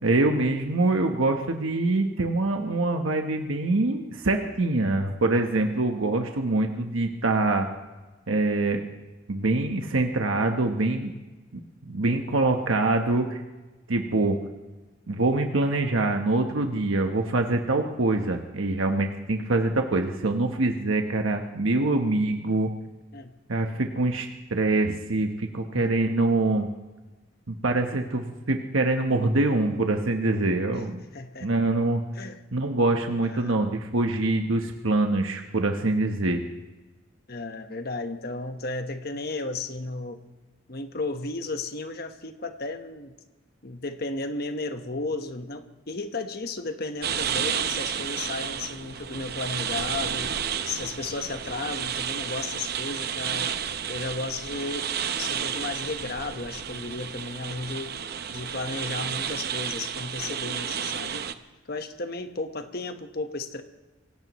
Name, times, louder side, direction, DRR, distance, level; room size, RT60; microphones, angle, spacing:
voice 1, 0.0-7.7 8.3-8.8 9.3-11.1 11.5-13.4 13.9-14.4 15.1-22.7 23.5-26.7 27.5-31.0 31.4-32.0 32.5-36.4, right 2 dB, 90° right, 4 dB, 1.1 m, -24 dB
voice 2, 31.1-31.5 32.2-32.4 33.2-33.5 37.3-40.2 40.7-43.1 43.6-50.3 50.6-54.9 55.2-57.9 58.3-61.2 61.7-63.6, left 3 dB, 50° left, 7 dB, 1.2 m, -34 dB
sound 1, 47.0-61.3, right 8 dB, 50° right, 0.7 m, -31 dB
26.5 x 17.0 x 3.1 m, 1.2 s
head